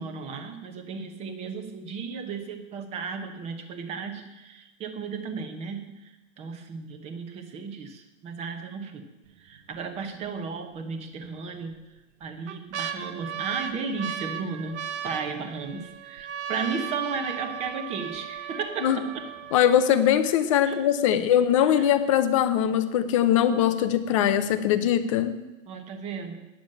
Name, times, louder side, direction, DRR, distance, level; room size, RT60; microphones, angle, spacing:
voice 1, 0.0-11.8 12.2-19.3 20.6-20.8 21.1-21.2 21.6-22.0 25.7-26.5, right 5 dB, 15° right, 7 dB, 0.8 m, -35 dB
sound 1, 9.3-9.7 10.2-10.3 11.2-11.7 12.2-20.2 20.9-21.0 21.1-21.6 22.1-22.2, right 8 dB, 60° right, 1.1 m, -36 dB
voice 2, 19.5-25.4, left 10 dB, 25° left, 11 dB, 0.5 m, -21 dB
9.3 x 7.1 x 8.7 m, 1.1 s
hypercardioid pair, 150°, 39 cm